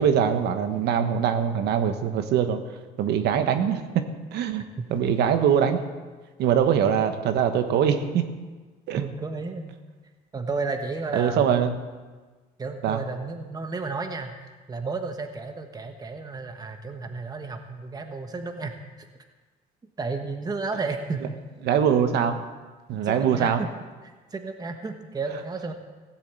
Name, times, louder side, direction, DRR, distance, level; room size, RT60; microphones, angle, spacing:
voice 1, 0.0-2.6 3.0-4.0 4.3-4.6 4.9-5.8 6.4-8.3 8.9-9.0 11.1-11.7 12.8-13.0 21.6-22.4 22.9-23.6, right 8 dB, 75° right, 8 dB, 1.3 m, -22 dB
voice 2, 9.0-9.8 10.3-11.5 12.6-19.1 20.0-21.2 23.0-23.7 24.3-25.7, right 4 dB, 20° right, 5 dB, 1.1 m, -32 dB
16.0 x 7.5 x 7.7 m, 1.3 s
cardioid pair, 110°, 17 cm